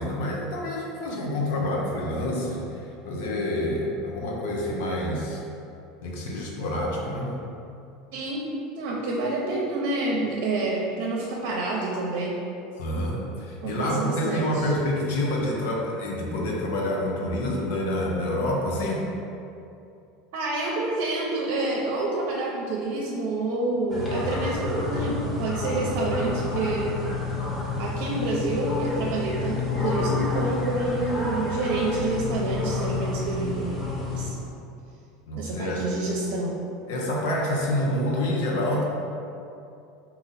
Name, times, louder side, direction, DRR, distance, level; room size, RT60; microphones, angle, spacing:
voice 1, 0.0-5.4 6.0-7.3 12.8-19.1 35.3-35.8 36.9-38.8, left 1 dB, 75° left, -2 dB, 0.9 m, -27 dB
voice 2, 8.1-8.5 8.8-12.4 13.6-14.7 20.3-27.0 27.8-33.7 34.1-34.3 35.3-36.5, right 2 dB, 65° right, -2 dB, 0.6 m, -28 dB
sound 1, 23.9-34.3, left 3 dB, 20° left, 1.1 m, -29 dB
4.0 x 2.9 x 4.0 m, 2.7 s
supercardioid pair, 105°, 0 cm